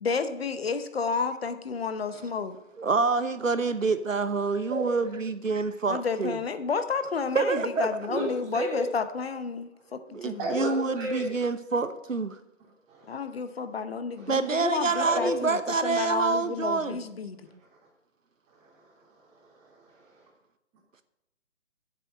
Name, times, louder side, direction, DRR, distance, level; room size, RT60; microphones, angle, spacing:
voice 1, 0.0-2.6 5.9-10.5 13.1-17.4, left 5 dB, 50° left, 0.9 m, -31 dB
voice 2, 2.8-6.4 7.3-7.9 10.1-12.4 14.3-17.0, right 4 dB, 85° right, 1.0 m, -27 dB
voice 3, 8.1-8.8 10.4-11.3 12.9-13.3 14.1-15.5 17.6-17.7 18.5-20.3, right 1 dB, 15° right, 2.9 m, -34 dB
7.8 x 7.6 x 7.6 m
figure-of-eight pair, 140°, 38 cm